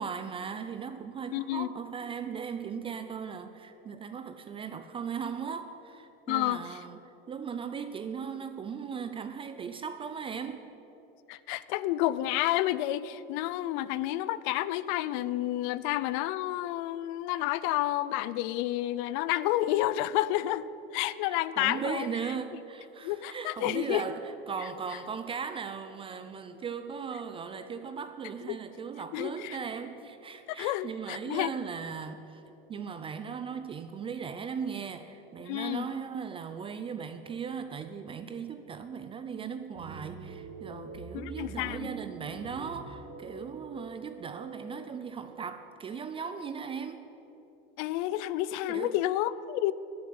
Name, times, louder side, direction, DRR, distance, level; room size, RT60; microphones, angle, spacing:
voice 1, 0.0-7.0 7.3-10.6 21.2-32.4 32.7-47.0 48.7-49.0, right 6 dB, 20° right, 9 dB, 0.5 m, -38 dB
voice 2, 1.3-1.7 6.3-6.8 11.3-20.7 20.9-22.1 23.0-24.0 28.5-28.6 29.1-29.6 30.5-31.5 35.5-35.9 41.1-41.9 47.8-49.7, left 15 dB, 55° left, 17 dB, 0.6 m, -30 dB
sound 1, 39.7-47.2, right 3 dB, 40° right, 1.6 m, -46 dB
11.0 x 10.0 x 9.5 m, 2.9 s
supercardioid pair, 145°, 29 cm